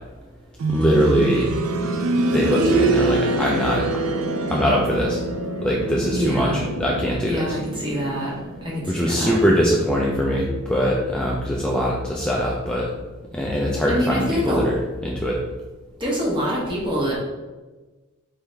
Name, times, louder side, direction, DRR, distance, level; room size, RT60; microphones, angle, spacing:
sound 1, 0.6-11.4 11.7-11.8 12.7-12.8, right 2 dB, 75° right, 0.4 m, -26 dB
voice 1, 0.7-1.5 2.3-4.0 4.5-5.2 5.6-7.5 8.9-12.9 13.3-14.7 15.0-15.4, equal, 5° left, -3 dB, 0.4 m, -22 dB
voice 2, 6.1-6.6 7.3-8.3 8.6-9.3 13.9-14.7 16.0-17.1, equal, 25° right, -4 dB, 1.3 m, -25 dB
4.3 x 3.6 x 3.4 m, 1.2 s
head